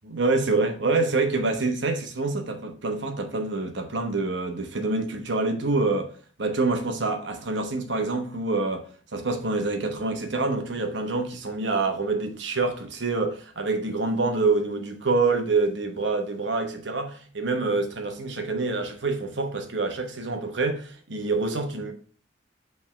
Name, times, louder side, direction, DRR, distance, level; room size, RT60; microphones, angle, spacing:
voice 1, 0.0-6.1 6.4-8.8 9.1-21.9, right 3 dB, 65° right, 1.1 m, -26 dB
5.4 x 3.5 x 5.8 m
head